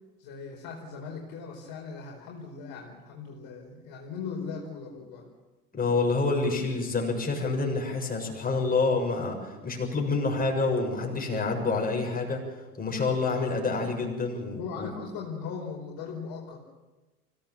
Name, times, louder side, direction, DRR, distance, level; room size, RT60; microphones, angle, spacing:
voice 1, 0.2-5.3 14.5-16.6, left 5 dB, 50° left, 0 dB, 4.8 m, -39 dB
voice 2, 5.7-12.4 12.8-14.9, left 3 dB, 20° left, 0 dB, 7.1 m, -27 dB
24.5 x 17.0 x 7.4 m, 1.1 s
hypercardioid pair, 80°, 47 cm